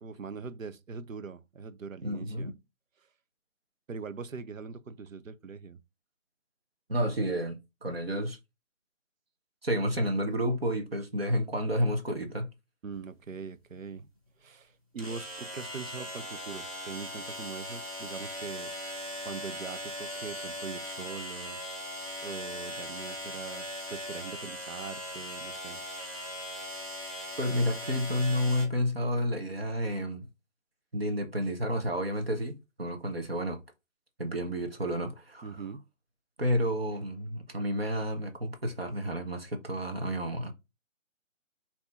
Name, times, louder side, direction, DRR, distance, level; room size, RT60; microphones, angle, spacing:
voice 1, 0.0-2.5 3.9-5.8 12.8-14.1 14.4-18.7 19.2-21.6 22.2-25.8 35.4-35.9, right 5 dB, 85° right, 0.7 m, -42 dB
voice 2, 2.0-2.5 6.9-8.4 9.6-12.5 27.4-30.2 30.9-33.6 34.2-35.5 36.4-40.5, equal, 50° right, 1.1 m, -30 dB
sound 1, 12.9-13.0 15.0-28.7, equal, 25° right, 1.3 m, -39 dB
4.2 x 2.8 x 3.5 m
figure-of-eight pair, 175°, 39 cm